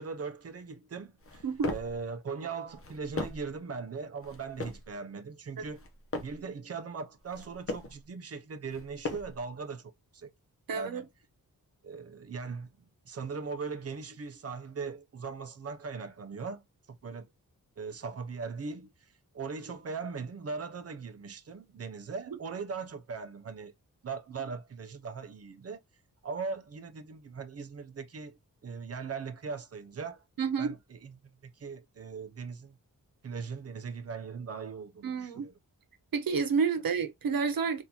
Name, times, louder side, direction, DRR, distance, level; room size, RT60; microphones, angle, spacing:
voice 1, 0.0-5.8 6.2-10.3 10.7-11.1 11.8-12.7 13.0-17.3 17.8-23.7 24.0-25.8 26.2-30.2 30.6-32.8 33.2-35.5, right 5 dB, 45° right, 0.6 m, -40 dB
sound 1, 1.2-2.0 2.7-3.6 4.2-4.9 5.6-6.5 7.2-8.0 8.7-9.5, left 2 dB, 40° left, 0.9 m, -39 dB
voice 2, 10.7-11.0 30.4-30.7 35.0-35.5 36.1-37.8, right 5 dB, 75° right, 0.9 m, -29 dB
3.7 x 2.6 x 2.9 m
wide cardioid pair, 125°, 35 cm